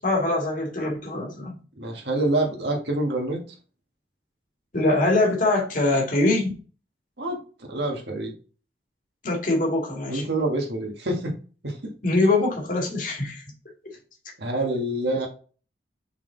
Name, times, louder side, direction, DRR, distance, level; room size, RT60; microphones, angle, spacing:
voice 1, 0.0-1.6 4.7-6.5 9.2-10.2 12.0-13.4, left 2 dB, 45° left, -1 dB, 2.2 m, -23 dB
voice 2, 1.8-3.4 7.2-8.3 10.1-11.3 11.6-11.9 14.4-15.3, right 1 dB, 70° right, 2 dB, 1.8 m, -26 dB
5.9 x 4.2 x 3.9 m, 0.38 s
head